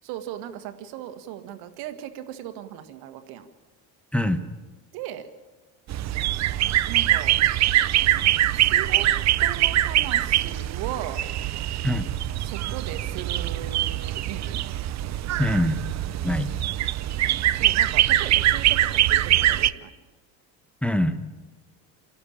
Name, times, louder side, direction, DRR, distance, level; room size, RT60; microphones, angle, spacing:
voice 1, 0.0-3.5 4.9-5.2 6.9-7.3 8.5-9.1 9.4-11.2 12.4-14.6 17.5-19.9, right 11 dB, 75° right, 8 dB, 1.9 m, -37 dB
sound 1, 5.9-19.7, right 13 dB, 45° right, 0.7 m, -23 dB
voice 2, 15.4-15.8 16.2-16.5 20.8-21.2, left 1 dB, 5° left, 8 dB, 1.2 m, -23 dB
29.5 x 12.0 x 8.8 m, 1.2 s
supercardioid pair, 105°, 38 cm